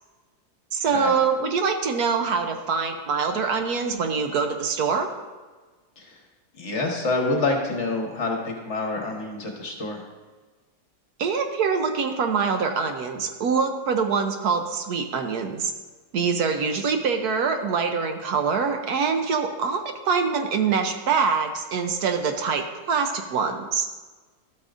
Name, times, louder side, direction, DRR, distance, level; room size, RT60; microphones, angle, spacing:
voice 1, 0.7-5.1 11.2-15.7 16.1-23.9, right 5 dB, 75° right, 6 dB, 1.2 m, -24 dB
voice 2, 6.6-10.0, left 2 dB, 50° left, 1 dB, 1.4 m, -27 dB
12.5 x 8.4 x 2.5 m, 1.3 s
omnidirectional pair, 1.7 m